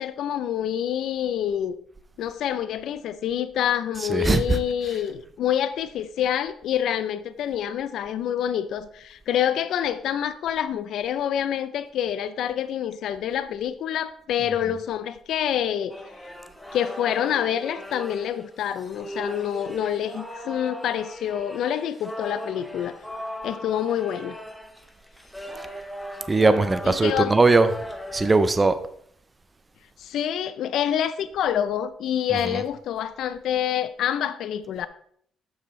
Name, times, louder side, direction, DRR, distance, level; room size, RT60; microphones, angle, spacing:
voice 1, 0.0-1.8 2.2-16.0 16.7-23.0 23.4-24.4 26.8-27.3 30.0-34.9, left 10 dB, 65° left, 0.4 m, -27 dB
voice 2, 4.0-4.6 4.9-5.0 26.3-27.8 28.1-28.7 32.3-32.6, right 3 dB, 15° right, 0.4 m, -20 dB
sound 1, 15.9-28.4, equal, 5° left, 0.8 m, -39 dB
7.4 x 6.8 x 3.1 m
cardioid pair, 165°, 0 cm